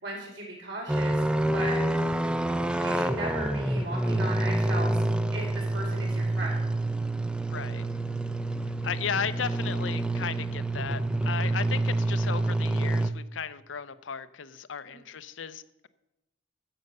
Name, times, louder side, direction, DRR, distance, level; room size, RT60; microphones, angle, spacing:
voice 1, 0.0-1.2 1.5-1.8 2.7-5.1 5.3-6.6, right 2 dB, 70° right, -2 dB, 4.6 m, -36 dB
sound 1, 0.9-13.1, right 1 dB, 5° right, 0.5 m, -27 dB
voice 2, 7.5-7.8 8.8-15.9, left 7 dB, 80° left, 13 dB, 0.7 m, -35 dB
12.0 x 7.9 x 6.7 m, 0.92 s
head